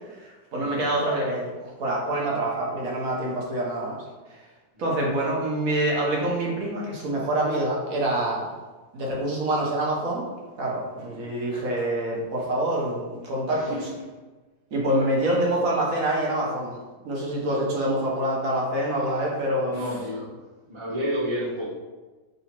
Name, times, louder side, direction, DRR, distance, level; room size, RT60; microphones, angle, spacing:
voice 1, 0.1-4.0 4.3-4.4 4.8-8.5 8.9-10.3 10.6-13.8 14.7-16.8 17.0-19.9, right 1 dB, 55° right, -3 dB, 1.2 m, -26 dB
voice 2, 11.0-11.3 13.5-13.8 14.9-15.0 17.4-17.7 19.7-20.3 20.7-21.7, equal, 25° right, -8 dB, 0.7 m, -31 dB
3.9 x 2.7 x 4.3 m, 1.2 s
omnidirectional pair, 1.9 m